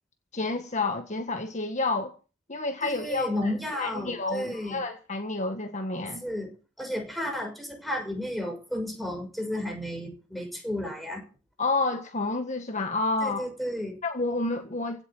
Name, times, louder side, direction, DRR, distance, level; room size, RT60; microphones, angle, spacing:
voice 1, 0.3-2.1 2.5-6.2 11.6-13.5 14.0-15.0, left 3 dB, 40° left, 1.6 m, -29 dB
voice 2, 2.8-4.8 6.2-6.5 6.8-11.2 13.2-14.0, left 1 dB, ahead, 6.0 m, -32 dB
16.5 x 8.2 x 8.9 m
head